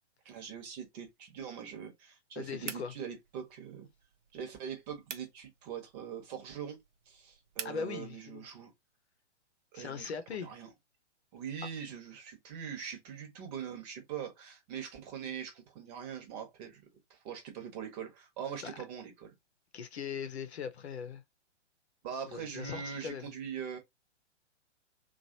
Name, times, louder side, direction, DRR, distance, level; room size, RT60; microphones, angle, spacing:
voice 1, 0.2-3.9 4.3-6.8 7.1-8.7 9.7-10.7 11.3-16.8 17.1-19.3 22.0-23.8, right 7 dB, 35° right, 1.1 m, -42 dB
voice 2, 2.4-2.9 7.6-8.4 9.7-10.5 18.6-18.7 19.7-21.2 22.3-23.3, left 6 dB, 65° left, 0.8 m, -40 dB
sound 1, 2.6-7.8, right 7 dB, 75° right, 0.7 m, -48 dB
3.0 x 2.5 x 2.7 m
figure-of-eight pair, 120°, 36 cm